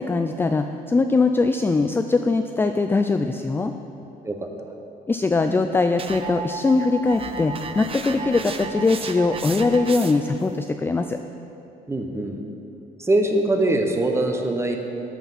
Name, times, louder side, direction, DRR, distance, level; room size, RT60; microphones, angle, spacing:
voice 1, 0.0-3.7 5.1-11.2, left 3 dB, 15° left, 7 dB, 0.3 m, -21 dB
sound 1, 6.0-10.4, right 5 dB, 35° right, 0.7 m, -33 dB
voice 2, 11.9-12.4 13.0-14.8, right 2 dB, 15° right, 3 dB, 1.1 m, -22 dB
13.5 x 5.8 x 5.8 m, 2.9 s
cardioid pair, 110°, 17 cm